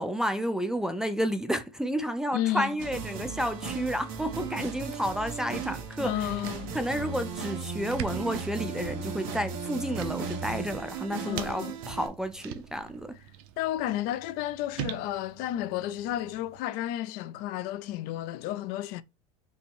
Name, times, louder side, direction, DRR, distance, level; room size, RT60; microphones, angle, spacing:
voice 1, 0.0-6.1 6.7-13.1, equal, 5° right, 0.4 m, -31 dB
voice 2, 2.3-2.8 6.0-6.7 11.2-11.8 13.6-19.0, left 13 dB, 55° left, 0.4 m, -32 dB
sound 1, 2.8-12.1, right 5 dB, 50° right, 1.3 m, -36 dB
sound 2, 5.4-16.6, right 12 dB, 75° right, 0.6 m, -44 dB
5.4 x 2.1 x 4.5 m
supercardioid pair, 135°, 19 cm